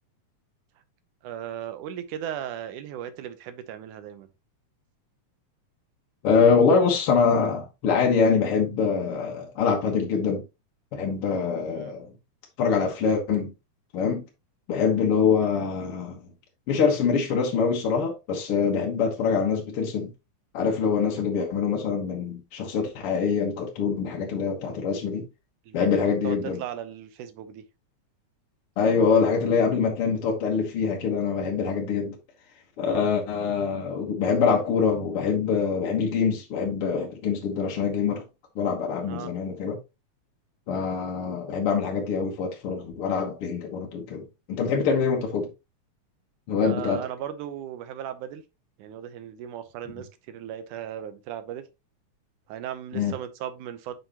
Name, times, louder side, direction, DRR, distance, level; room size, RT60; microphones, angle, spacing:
voice 1, 1.2-4.3 11.7-11.9 22.6-22.7 25.7-27.6 32.8-33.1 39.1-39.3 46.6-48.4 48.8-51.6 52.5-54.0, right 10 dB, 85° right, 2.4 m, -37 dB
voice 2, 6.2-10.4 10.9-12.1 12.6-13.5 13.9-14.2 14.7-16.2 16.7-20.1 20.5-25.3 25.7-26.6 28.8-32.2 32.8-38.2 38.6-39.8 40.7-45.5 46.5-47.0 52.9-53.2, left 5 dB, 55° left, 1.9 m, -24 dB
7.6 x 5.7 x 2.9 m
omnidirectional pair, 3.5 m